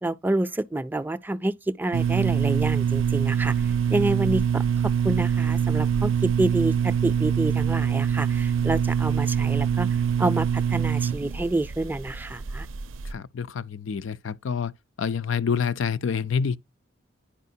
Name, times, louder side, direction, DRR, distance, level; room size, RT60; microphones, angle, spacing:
voice 1, 0.0-3.5 3.9-9.9 10.2-12.7, right 2 dB, 10° right, 0.4 m, -28 dB
sound 1, 1.9-13.1, right 7 dB, 85° right, 0.4 m, -24 dB
voice 2, 13.1-14.7 15.0-16.6, left 6 dB, 75° left, 0.5 m, -27 dB
10.0 x 4.9 x 2.7 m
head